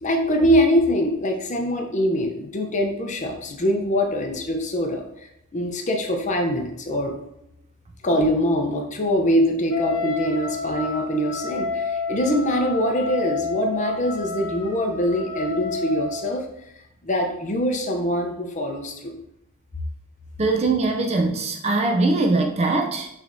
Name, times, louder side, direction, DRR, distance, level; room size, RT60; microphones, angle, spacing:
voice 1, 0.0-7.1 8.0-16.4 17.0-19.1, equal, 35° left, 3 dB, 0.6 m, -23 dB
Wind instrument woodwind instrument, 9.7-16.3, left 4 dB, 65° left, 0.9 m, -30 dB
voice 2, 20.4-23.1, right 3 dB, 30° right, 3 dB, 0.4 m, -21 dB
6.2 x 3.3 x 2.6 m, 0.83 s
head